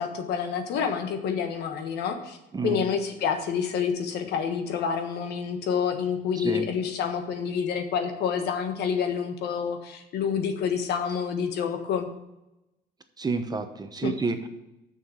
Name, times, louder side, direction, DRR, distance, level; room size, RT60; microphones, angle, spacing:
voice 1, 0.0-2.4 2.6-12.1 14.0-14.1, left 7 dB, 75° left, 6 dB, 1.4 m, -28 dB
voice 2, 13.2-14.5, right 4 dB, 25° right, 7 dB, 0.9 m, -29 dB
6.7 x 6.3 x 7.1 m, 0.94 s
cardioid pair, 110°, 17 cm